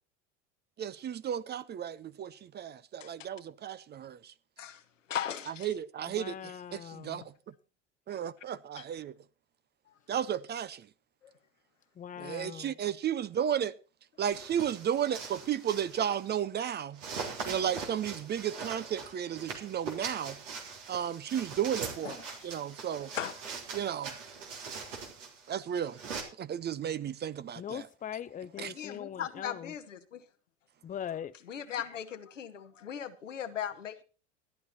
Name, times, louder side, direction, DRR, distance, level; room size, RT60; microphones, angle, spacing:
voice 1, 0.8-4.3 5.6-7.3 8.1-9.1 10.1-10.9 12.2-13.7 14.2-17.0 17.5-20.4 20.9-22.2 22.4-23.1 23.7-24.1 25.5-26.0 26.4-27.9 28.6-28.7, right 9 dB, 30° right, 0.6 m, -33 dB
voice 2, 4.6-5.7 8.7-8.8 11.2-11.3 12.2-12.3 15.1-15.2 21.7-21.8 22.0-22.5 23.1-23.4 28.6-30.2 31.4-34.0, left 9 dB, 85° left, 1.3 m, -39 dB
voice 3, 6.1-7.3 12.0-12.7 27.6-29.7 30.8-31.3, left 9 dB, 20° left, 0.7 m, -41 dB
sound 1, 14.3-16.3 16.9-26.2, right 5 dB, 80° right, 3.6 m, -42 dB
14.0 x 11.0 x 4.3 m
hypercardioid pair, 80°, 37 cm